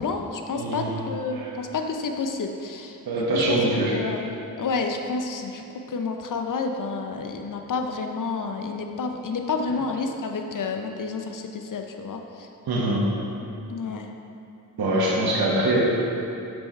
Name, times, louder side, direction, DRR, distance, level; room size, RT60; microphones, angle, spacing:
voice 1, 0.0-3.0 3.3-3.6 3.9-5.6 5.9-12.5 13.7-14.1, left 4 dB, 55° left, 4 dB, 0.7 m, -30 dB
voice 2, 0.6-1.0 1.3-1.5 3.1-4.0 12.7-13.1 14.8-15.8, right 1 dB, 70° right, -4 dB, 1.2 m, -23 dB
6.1 x 4.6 x 4.4 m, 2.8 s
cardioid pair, 50°, 38 cm